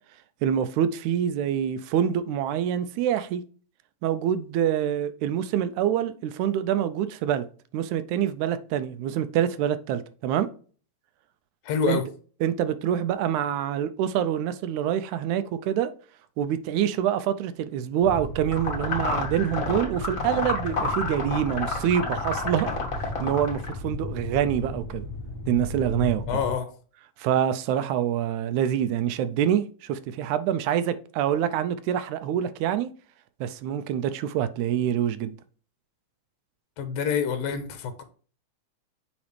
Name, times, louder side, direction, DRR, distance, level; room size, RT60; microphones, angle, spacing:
voice 1, 0.4-3.4 4.0-7.5 7.7-10.5 11.9-12.0 12.4-15.9 16.4-22.7 23.0-25.0 25.5-26.2 27.2-32.9 33.4-35.4, right 10 dB, 80° right, 1.9 m, -26 dB
voice 2, 11.6-12.1 26.3-26.7 36.8-38.0, left 6 dB, 70° left, 1.8 m, -27 dB
sound 1, 18.0-26.5, left 1 dB, 50° left, 0.9 m, -35 dB
sound 2, 18.5-23.7, left 3 dB, 35° left, 1.4 m, -30 dB
7.1 x 5.0 x 3.2 m
omnidirectional pair, 3.5 m